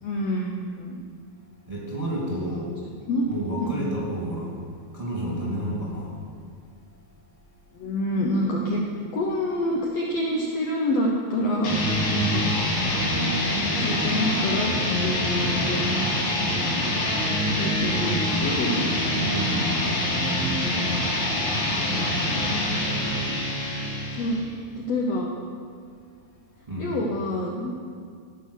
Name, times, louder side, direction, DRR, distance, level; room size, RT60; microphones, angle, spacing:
voice 1, 0.0-1.0 2.4-2.6 3.1-3.3 3.6-4.0 7.7-8.8 9.1-11.8 12.1-12.5 13.6-14.7 15.0-16.8 17.6-18.9 22.9-23.2 24.2-24.4 24.8-25.3 26.8-27.7, left 1 dB, 85° left, -1 dB, 1.4 m, -27 dB
voice 2, 1.7-2.7 3.3-4.5 4.9-6.2 19.3-19.8 26.7-27.0, right 1 dB, 15° right, -5 dB, 1.4 m, -30 dB
sound 1, 11.6-24.5, left 1 dB, 65° left, 4.2 m, -25 dB
16.5 x 5.7 x 6.4 m, 2.2 s
omnidirectional pair, 4.2 m